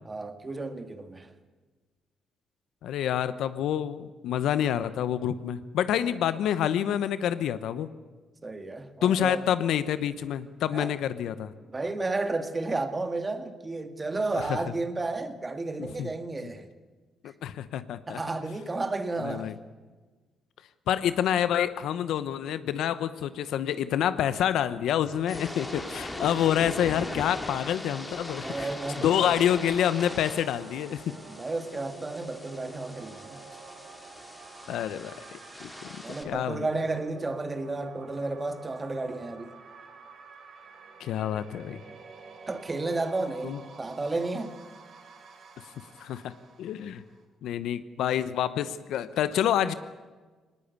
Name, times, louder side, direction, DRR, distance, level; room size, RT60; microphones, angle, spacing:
voice 1, 0.1-1.3 8.4-9.4 10.7-10.9 11.7-16.7 18.1-19.5 28.4-29.3 31.3-33.4 36.0-39.5 42.5-44.5, right 2 dB, 25° right, 1.8 m, -32 dB
voice 2, 2.8-7.9 9.0-11.5 14.4-14.5 15.8-16.1 17.2-18.2 19.2-19.5 20.9-28.7 29.0-31.0 34.7-36.7 41.0-41.8 43.4-43.6 46.0-46.3 46.6-47.0 47.4-49.7, left 10 dB, 80° left, 0.9 m, -28 dB
sound 1, 25.1-36.2, left 1 dB, 15° left, 2.7 m, -40 dB
sound 2, 27.4-47.2, right 4 dB, 55° right, 4.1 m, -49 dB
19.5 x 19.0 x 8.3 m
cardioid pair, 90°, 0 cm